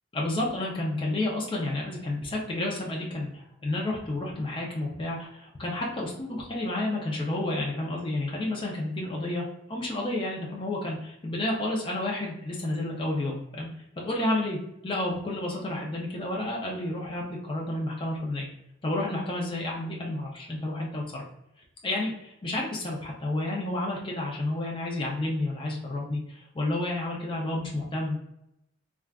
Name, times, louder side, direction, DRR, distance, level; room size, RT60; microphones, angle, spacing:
voice 1, 0.1-13.7 14.0-14.6 14.8-18.5 18.8-21.2 21.8-28.2, left 1 dB, 25° left, -2 dB, 0.5 m, -30 dB
3.4 x 2.4 x 2.3 m, 0.82 s
head